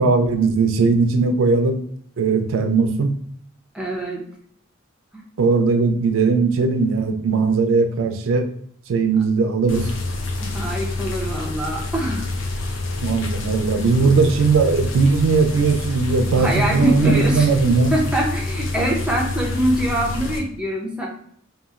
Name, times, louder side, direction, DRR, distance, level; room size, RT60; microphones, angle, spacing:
voice 1, 0.0-1.8 2.2-3.2 5.4-8.5 8.9-9.9 13.0-17.9, right 4 dB, 85° right, 7 dB, 0.4 m, -18 dB
voice 2, 3.7-4.2 5.1-5.2 10.4-12.3 12.7-12.8 16.3-17.5 17.9-21.1, right 1 dB, 5° right, -1 dB, 0.5 m, -24 dB
sound 1, 9.7-20.4, left 2 dB, 75° left, 0.5 m, -27 dB
2.9 x 2.3 x 2.4 m, 0.63 s
head